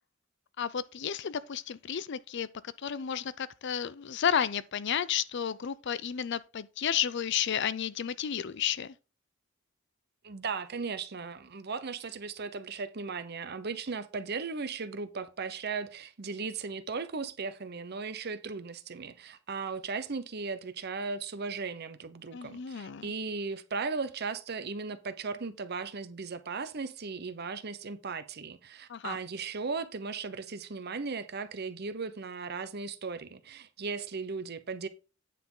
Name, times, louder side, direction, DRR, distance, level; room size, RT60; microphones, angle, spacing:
voice 1, 0.6-2.5 2.8-8.9 22.3-23.1 28.9-29.2, left 8 dB, 60° left, 0.5 m, -32 dB
voice 2, 10.2-34.9, right 4 dB, 55° right, 0.8 m, -37 dB
9.2 x 5.9 x 3.8 m
head